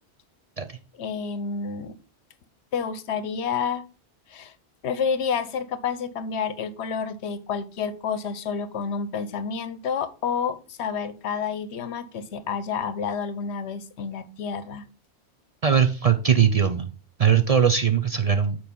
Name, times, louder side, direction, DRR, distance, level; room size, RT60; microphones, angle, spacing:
voice 1, 0.9-2.0 2.7-3.8 4.3-4.5 4.8-14.9, left 6 dB, 75° left, 1.0 m, -29 dB
voice 2, 15.6-16.9 17.2-18.6, right 7 dB, 45° right, 0.5 m, -20 dB
7.1 x 4.7 x 5.2 m
omnidirectional pair, 1.1 m